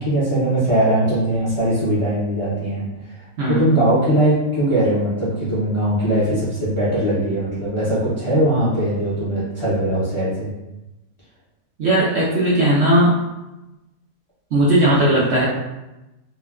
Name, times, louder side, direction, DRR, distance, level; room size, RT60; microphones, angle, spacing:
voice 1, 0.0-2.8 3.5-10.5, right 1 dB, 35° left, -10 dB, 0.5 m, -20 dB
voice 2, 11.8-13.2 14.5-15.4, right 1 dB, 60° right, -6 dB, 0.8 m, -17 dB
3.0 x 2.1 x 2.3 m, 0.99 s
omnidirectional pair, 1.5 m